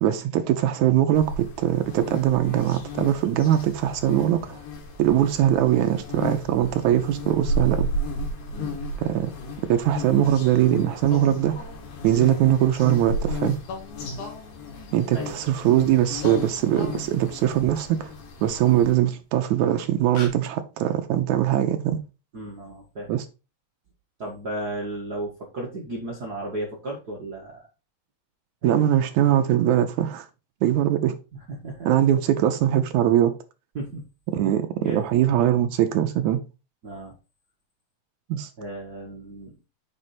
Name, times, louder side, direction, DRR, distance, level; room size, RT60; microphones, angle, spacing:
voice 1, 0.0-4.6 5.0-7.9 9.0-9.3 9.7-11.7 12.0-13.6 14.9-18.1 18.4-22.0 23.1-23.2 28.6-30.3 30.6-31.1 31.8-33.3 34.3-36.4 38.3-38.5, right 11 dB, 85° right, 1.7 m, -21 dB
sound 1, 1.1-18.9, equal, 80° left, 3.2 m, -34 dB
sound 2, 11.1-12.2 13.6-15.7 16.1-17.6 19.1-19.2 19.7-19.8 20.1-20.3, left 4 dB, 65° left, 2.8 m, -40 dB
voice 2, 22.3-23.1 24.2-27.6 28.6-28.7 31.6-31.9 33.7-34.0 34.4-35.1 36.8-37.1 38.6-39.5, right 1 dB, 55° right, 1.1 m, -34 dB
6.4 x 4.4 x 4.2 m
omnidirectional pair, 4.0 m